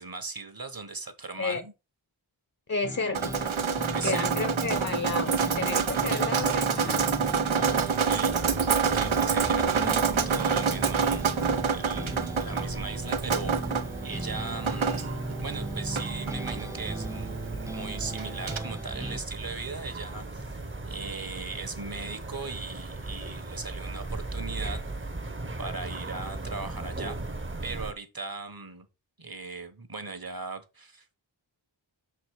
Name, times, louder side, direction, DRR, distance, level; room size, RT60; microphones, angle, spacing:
voice 1, 0.0-1.7 3.9-4.5 7.6-8.4 8.9-10.0 10.2-11.3 11.6-20.6 20.8-24.8 25.6-27.2 27.6-28.9 29.2-31.0, right 3 dB, 50° right, 1.3 m, -38 dB
voice 2, 2.7-3.4 4.0-7.1, left 3 dB, 35° left, 0.9 m, -32 dB
sound 1, 2.8-19.2, right 1 dB, 5° right, 0.4 m, -37 dB
Drip, 3.1-18.6, right 6 dB, 80° right, 0.9 m, -28 dB
sound 2, 8.3-27.9, right 2 dB, 25° right, 1.0 m, -38 dB
6.2 x 4.9 x 4.7 m
wide cardioid pair, 50°, 47 cm